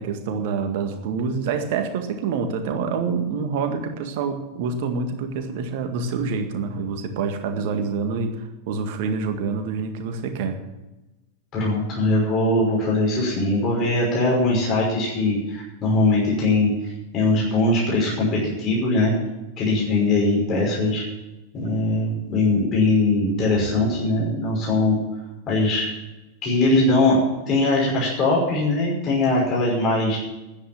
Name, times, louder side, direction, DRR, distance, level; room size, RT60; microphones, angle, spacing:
voice 1, 0.0-10.6, right 5 dB, 50° right, 6 dB, 1.9 m, -27 dB
voice 2, 11.5-16.7 17.1-19.1 19.6-21.0 21.5-25.0 25.5-25.9 26.4-27.2 27.5-30.2, left 2 dB, 35° left, -4 dB, 5.7 m, -21 dB
10.5 x 10.0 x 8.9 m, 1.0 s
figure-of-eight pair, 90°, 0 cm